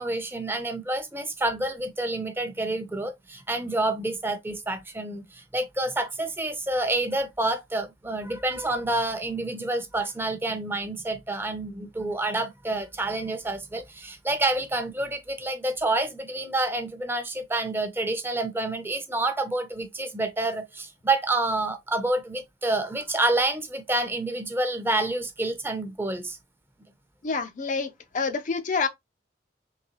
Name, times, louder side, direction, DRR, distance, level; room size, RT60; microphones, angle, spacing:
voice 1, 0.0-26.4, right 2 dB, 15° right, 0.7 m, -28 dB
voice 2, 27.2-27.9 28.1-28.9, left 4 dB, 45° left, 0.5 m, -27 dB
3.9 x 3.2 x 3.0 m
head